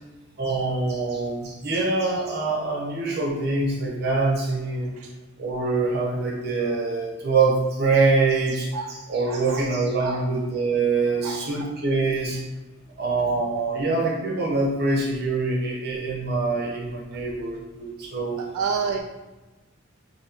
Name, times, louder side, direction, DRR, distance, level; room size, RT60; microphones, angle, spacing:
voice 1, 0.4-4.9 5.4-12.4 13.0-18.4, right 3 dB, 50° right, -3 dB, 0.9 m, -24 dB
voice 2, 9.3-9.6 10.0-10.2 11.2-11.4 18.5-19.0, right 5 dB, 85° right, 2 dB, 0.3 m, -28 dB
2.9 x 2.7 x 4.4 m, 1.1 s
head